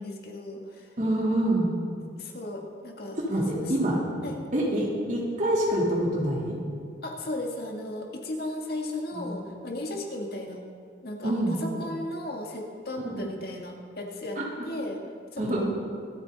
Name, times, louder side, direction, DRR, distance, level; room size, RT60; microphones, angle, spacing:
voice 1, 0.0-1.0 2.1-3.2 3.5-3.7 4.2-4.4 7.0-10.6 11.0-11.3 11.6-15.0 15.3-15.7, left 1 dB, 55° left, 1 dB, 1.9 m, -35 dB
voice 2, 1.0-1.7 3.3-4.0 4.5-6.6 9.1-9.3 11.2-11.5 13.0-13.1 14.4-14.5 15.4-15.7, right 1 dB, 45° right, -4 dB, 3.6 m, -26 dB
25.5 x 9.4 x 4.1 m, 2.2 s
head